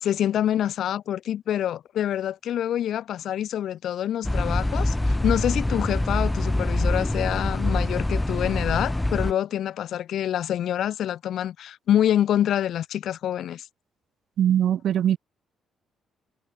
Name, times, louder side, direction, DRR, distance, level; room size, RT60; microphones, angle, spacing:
voice 1, 0.0-13.6, left 11 dB, 70° left, 1.1 m, -26 dB
sound 1, 4.2-9.3, left 1 dB, 10° left, 1.2 m, -25 dB
voice 2, 14.4-15.2, right 10 dB, 70° right, 0.5 m, -21 dB
cardioid pair, 90°, 0 cm